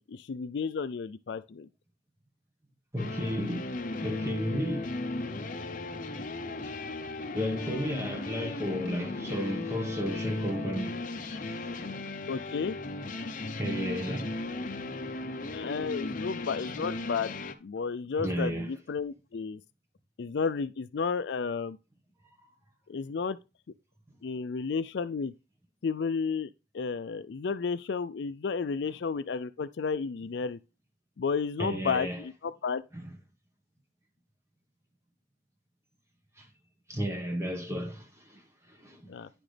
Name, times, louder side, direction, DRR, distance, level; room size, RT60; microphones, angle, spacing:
voice 1, 0.0-1.7 12.3-12.8 15.5-17.3 17.6-19.6 20.2-21.8 22.9-23.4 24.2-25.3 25.8-26.5 26.7-30.6 31.2-32.8 39.1-39.3, left 5 dB, 60° left, 0.4 m, -32 dB
voice 2, 2.9-3.7 4.0-4.9 7.3-11.7 13.6-14.3 18.2-18.7 31.6-32.2 32.9-33.1 36.4-36.5 36.9-38.4 38.7-39.1, equal, 15° right, 1.4 m, -33 dB
sound 1, 3.0-17.5, left 2 dB, 40° left, 0.8 m, -36 dB
9.9 x 6.0 x 3.4 m
head